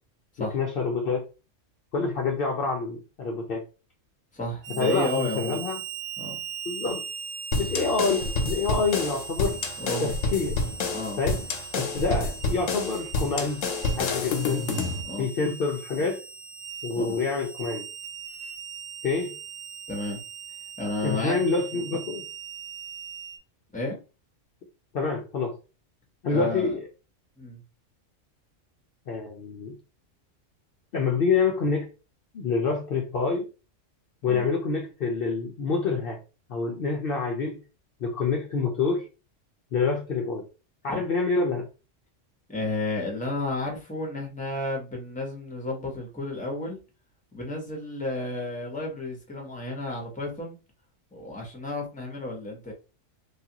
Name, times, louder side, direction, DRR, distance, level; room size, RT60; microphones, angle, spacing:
voice 1, 0.4-1.2 1.9-3.6 4.8-5.8 6.7-7.0 7.6-9.6 10.0-10.6 11.2-11.4 11.7-13.6 14.0-14.7 15.2-16.2 16.8-17.9 19.0-19.4 21.0-22.2 24.9-25.6 26.2-26.8 29.1-29.7 30.9-31.9 32.3-33.4 34.2-36.2 36.5-37.6 38.0-39.1 39.7-40.5 40.8-41.7, left 4 dB, 60° left, 0 dB, 0.7 m, -27 dB
voice 2, 4.3-5.6 6.2-6.4 9.8-10.1 10.9-11.2 15.0-15.3 17.0-17.2 19.9-20.2 20.8-21.4 23.7-24.0 26.3-26.7 27.4-27.6 34.3-34.4 40.9-41.0 42.5-46.8 47.3-50.6 51.1-52.7, left 2 dB, 5° left, 0 dB, 0.8 m, -32 dB
Harmonica, 4.6-23.4, right 7 dB, 70° right, 0.9 m, -39 dB
sound 1, 7.5-15.0, left 3 dB, 85° left, 1.0 m, -29 dB
3.2 x 2.4 x 2.8 m, 0.31 s
omnidirectional pair, 1.3 m